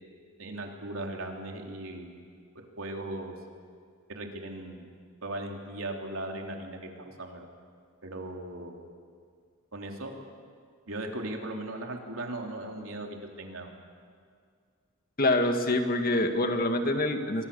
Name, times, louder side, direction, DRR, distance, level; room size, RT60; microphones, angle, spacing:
voice 1, 0.4-2.1 2.8-3.4 4.1-4.9 5.2-7.5 8.0-8.8 9.7-10.1 10.9-13.7, right 1 dB, 70° right, 2 dB, 3.5 m, -38 dB
voice 2, 15.2-17.4, left 1 dB, 40° left, 5 dB, 2.1 m, -26 dB
28.5 x 24.5 x 7.1 m, 2.1 s
head